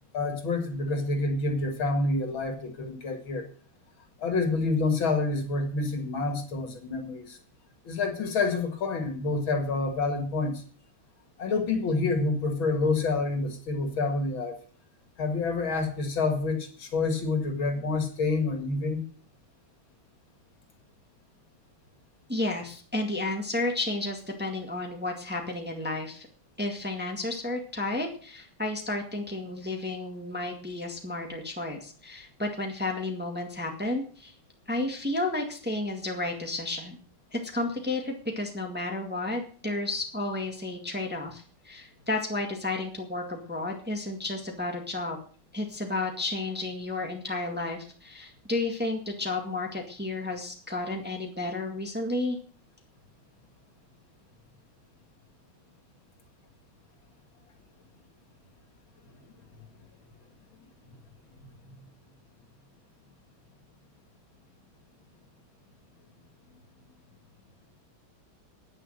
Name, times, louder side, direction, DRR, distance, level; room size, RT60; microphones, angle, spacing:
voice 1, 0.1-3.4 4.2-7.4 7.8-10.6 11.4-14.6 15.2-19.0 61.3-61.7, left 3 dB, 70° left, 5 dB, 2.8 m, -28 dB
voice 2, 22.3-26.3 26.6-34.3 34.7-37.0 37.3-45.2 45.5-52.4, left 2 dB, 5° right, 2 dB, 1.7 m, -32 dB
9.9 x 9.9 x 6.6 m, 0.43 s
omnidirectional pair, 2.3 m